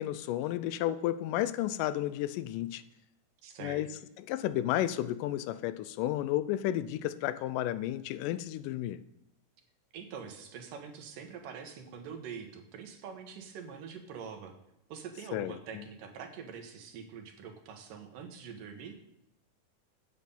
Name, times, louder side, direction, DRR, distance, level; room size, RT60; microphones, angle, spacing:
voice 1, 0.0-2.8 3.6-3.9 4.2-9.0 15.3-15.8, left 13 dB, 85° left, 2.2 m, -32 dB
voice 2, 3.4-3.8 9.9-14.6 14.9-19.0, right 6 dB, 80° right, 2.9 m, -45 dB
9.2 x 8.5 x 5.4 m
omnidirectional pair, 3.7 m